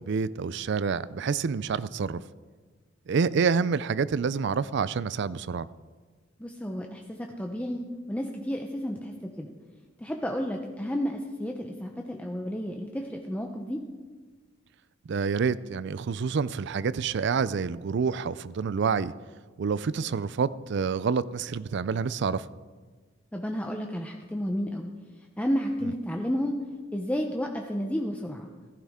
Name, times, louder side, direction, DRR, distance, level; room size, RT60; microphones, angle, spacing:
voice 1, 0.0-2.2 3.1-5.7 15.1-19.1 19.6-22.5, right 5 dB, 65° right, 17 dB, 0.4 m, -28 dB
voice 2, 6.4-9.5 10.0-13.8 23.3-24.9 25.4-26.6 26.9-28.5, equal, 5° left, 2 dB, 0.7 m, -31 dB
15.5 x 14.5 x 3.7 m, 1.4 s
head